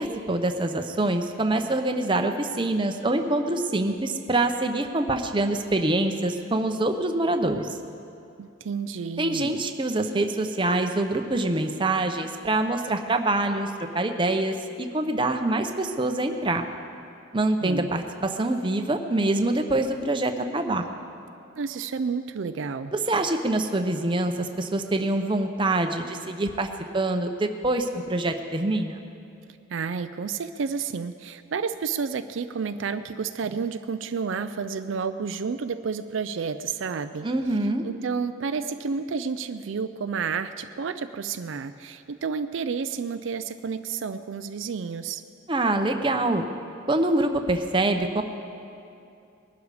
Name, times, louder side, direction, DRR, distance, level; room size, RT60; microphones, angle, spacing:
voice 1, 0.0-7.7 9.2-16.6 17.3-20.8 22.9-26.7 26.9-29.0 37.2-37.8 45.5-46.5 46.9-48.2, right 2 dB, 25° right, 5 dB, 0.8 m, -25 dB
voice 2, 8.4-9.6 17.6-17.9 21.6-22.9 29.7-37.3 37.8-45.2, right 5 dB, 70° right, 10 dB, 0.4 m, -30 dB
20.5 x 12.0 x 4.9 m, 2.6 s
head